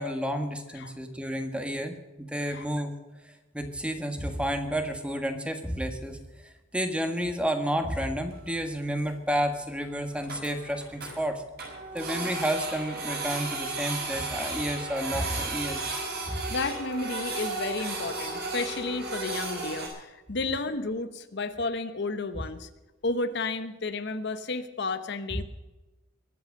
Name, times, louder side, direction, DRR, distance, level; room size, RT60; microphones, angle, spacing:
voice 1, 0.0-3.0 3.5-6.2 6.4-11.4 11.9-15.9 16.3-16.4, equal, 5° right, 6 dB, 1.6 m, -31 dB
Printer, 8.3-8.4 8.6-8.7 9.1-9.2 9.4-9.5 9.8-9.9 10.1-11.1 11.6-19.9, right 3 dB, 50° right, 5.6 m, -34 dB
voice 2, 16.5-22.7 23.0-25.4, left 3 dB, 60° left, 11 dB, 0.9 m, -32 dB
22.0 x 8.0 x 6.6 m, 1.1 s
head